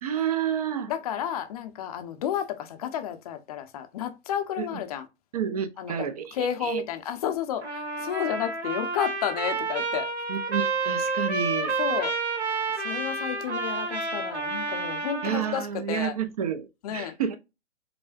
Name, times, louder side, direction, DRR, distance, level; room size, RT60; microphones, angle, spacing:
voice 1, 0.0-0.9 4.6-4.8 5.3-6.8 10.3-11.8 15.2-17.4, right 8 dB, 35° right, 0.5 m, -30 dB
voice 2, 0.9-5.1 5.8-5.9 6.3-10.1 11.8-12.1 12.8-16.1 16.8-17.1, left 9 dB, 35° left, 0.6 m, -31 dB
Trumpet, 7.6-15.6, right 3 dB, 80° right, 1.5 m, -30 dB
4.9 x 2.1 x 2.4 m
figure-of-eight pair, 130°, 34 cm